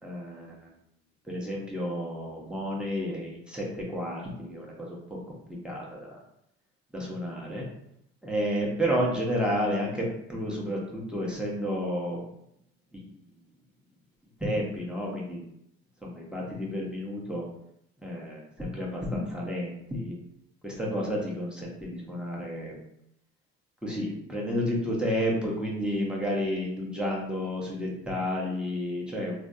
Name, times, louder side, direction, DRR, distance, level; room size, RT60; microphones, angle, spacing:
voice 1, 0.0-0.5 1.3-5.0 5.6-6.2 6.9-7.7 8.2-12.2 14.4-15.4 16.0-17.4 18.0-20.1 20.6-22.7 23.8-29.3, equal, 5° right, -4 dB, 1.0 m, -31 dB
3.3 x 2.1 x 2.6 m, 0.75 s
hypercardioid pair, 70°, 33 cm